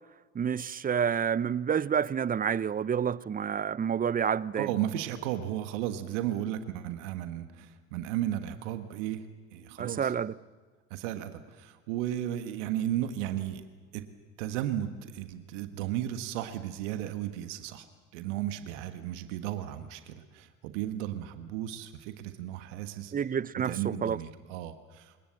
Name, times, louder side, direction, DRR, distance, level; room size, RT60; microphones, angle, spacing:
voice 1, 0.3-4.7 9.8-10.3 23.1-23.7 24.0-24.2, right 7 dB, 25° right, 0.6 m, -29 dB
voice 2, 4.5-10.1 10.9-13.7 13.9-14.1 14.4-17.9 18.1-23.1 23.6-25.3, right 12 dB, 70° right, 1.5 m, -34 dB
28.5 x 19.0 x 7.6 m
hypercardioid pair, 70°, 37 cm